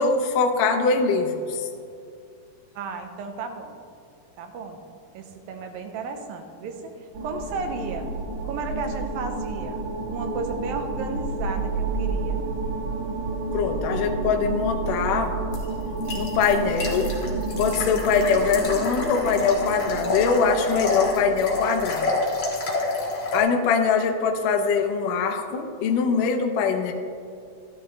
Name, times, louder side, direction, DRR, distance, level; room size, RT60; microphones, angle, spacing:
voice 1, 0.0-1.7 13.5-15.4 16.2-17.1 17.6-22.1 23.3-26.9, left 5 dB, 75° left, 4 dB, 2.2 m, -23 dB
voice 2, 2.8-3.8 4.4-4.8 5.1-8.1 8.4-12.4, right 4 dB, 80° right, 5 dB, 2.6 m, -34 dB
sound 1, 7.1-21.8, right 3 dB, 65° right, 1.8 m, -30 dB
sound 2, 15.5-23.4, left 2 dB, 45° left, 1.8 m, -28 dB
13.5 x 11.0 x 3.2 m, 2.4 s
omnidirectional pair, 4.1 m